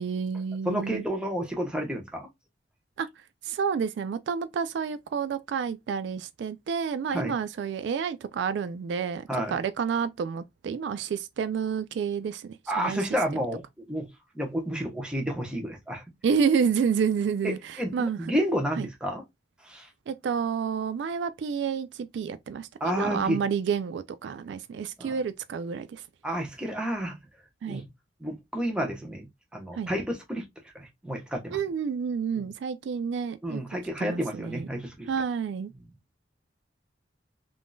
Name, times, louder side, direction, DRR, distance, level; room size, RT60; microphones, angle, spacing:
voice 1, 0.0-1.0 3.0-3.1 3.4-13.5 16.2-18.3 18.8-18.9 20.1-26.0 27.6-27.8 29.7-29.9 31.5-33.6 34.0-34.7 35.1-35.7, right 6 dB, 70° right, 0.3 m, -29 dB
voice 2, 0.6-2.3 7.1-7.3 9.3-9.6 12.7-13.6 13.9-14.1 14.3-16.0 17.4-17.5 17.8-19.2 19.7-19.9 22.8-23.4 25.0-25.1 26.2-27.2 27.7-27.8 28.2-29.3 29.5-30.5 30.7-31.6 32.4-32.5 33.4-35.1, equal, 5° right, 0.9 m, -30 dB
3.6 x 2.6 x 2.2 m
head